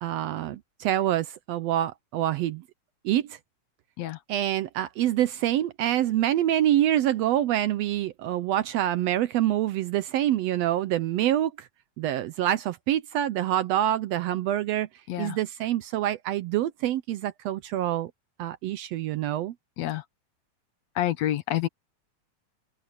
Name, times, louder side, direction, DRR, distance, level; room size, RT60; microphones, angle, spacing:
voice 1, 0.0-2.6 3.0-3.4 4.3-11.7 12.0-14.9 15.2-18.1 18.4-19.5, right 12 dB, 75° right, 1.6 m, -26 dB
voice 2, 21.0-21.7, left 13 dB, 70° left, 2.0 m, -28 dB
open air
omnidirectional pair, 3.4 m